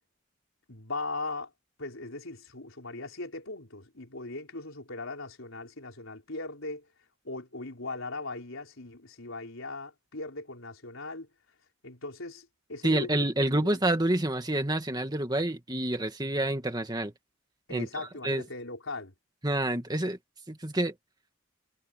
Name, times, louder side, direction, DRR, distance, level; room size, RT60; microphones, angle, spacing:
voice 1, 0.7-1.5 1.8-6.9 7.2-11.3 11.8-13.1 13.5-13.8 17.7-19.1, left 2 dB, 75° left, 4.3 m, -39 dB
voice 2, 12.8-17.1 17.7-18.4 19.4-20.2 20.5-20.9, right 1 dB, 20° right, 2.1 m, -28 dB
head